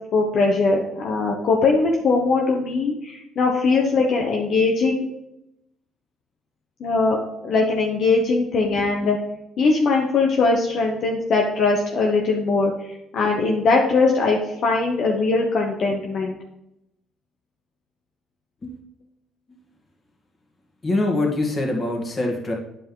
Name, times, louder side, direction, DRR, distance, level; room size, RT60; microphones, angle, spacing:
voice 1, 0.1-5.0 6.8-7.2 7.4-9.2 9.6-16.3, left 3 dB, 60° left, 0 dB, 1.1 m, -20 dB
voice 2, 20.8-22.5, left 2 dB, 30° left, 0 dB, 2.1 m, -24 dB
9.1 x 5.0 x 3.9 m, 0.85 s
cardioid pair, 95°, 0 cm